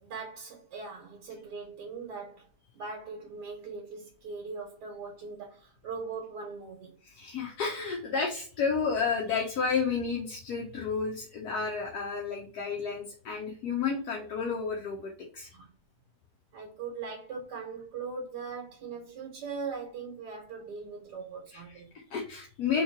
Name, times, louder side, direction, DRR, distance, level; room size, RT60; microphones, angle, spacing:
voice 1, 0.0-2.5 2.7-6.9 15.5-15.7 16.5-21.9, right 4 dB, 80° right, 1.6 m, -40 dB
voice 2, 7.0-15.5 21.5-21.6 22.1-22.8, left 5 dB, 70° left, 1.3 m, -31 dB
3.6 x 3.2 x 4.4 m
omnidirectional pair, 1.8 m